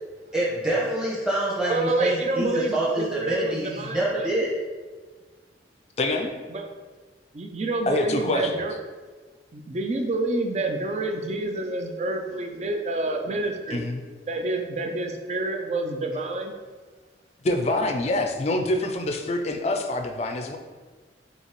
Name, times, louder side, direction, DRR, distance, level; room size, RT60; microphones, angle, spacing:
voice 1, 0.3-4.5, right 1 dB, 5° right, -6 dB, 1.0 m, -26 dB
voice 2, 1.7-4.4 6.5-6.6 7.3-8.7 9.5-13.9 14.3-16.5, right 2 dB, 35° right, 4 dB, 0.4 m, -28 dB
voice 3, 6.0-6.3 7.9-8.6 13.7-14.0 17.4-20.6, left 2 dB, 35° left, 4 dB, 0.4 m, -25 dB
5.5 x 2.8 x 3.1 m, 1.4 s
head